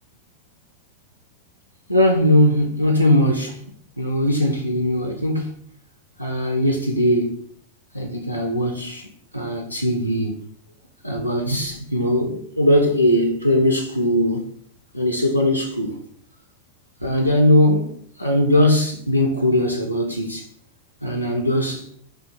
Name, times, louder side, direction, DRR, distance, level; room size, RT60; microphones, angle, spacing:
voice 1, 1.9-3.6 4.0-5.5 6.2-7.4 7.9-9.1 9.3-10.4 11.0-14.4 14.9-15.9 17.0-17.9 18.2-20.5 21.0-21.9, left 1 dB, 90° left, 0.4 m, -20 dB
2.5 x 2.2 x 3.8 m
figure-of-eight pair, 90°, 0 cm